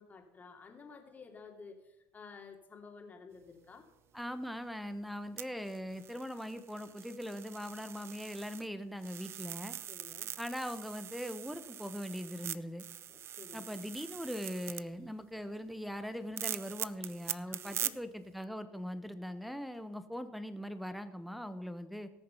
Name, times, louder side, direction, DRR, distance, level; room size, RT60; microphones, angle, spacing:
voice 1, 0.0-3.8 9.9-10.3 13.1-13.7 17.5-17.9, left 5 dB, 25° left, 2 dB, 2.8 m, -52 dB
voice 2, 4.1-9.8 10.4-12.8 13.5-22.1, equal, ahead, 12 dB, 1.1 m, -41 dB
sound 1, 5.4-8.7 9.0-14.8 16.4-17.9 18.4-18.5, right 10 dB, 45° right, 0.5 m, -42 dB
18.0 x 6.6 x 5.7 m, 0.92 s
supercardioid pair, 95°, 6 cm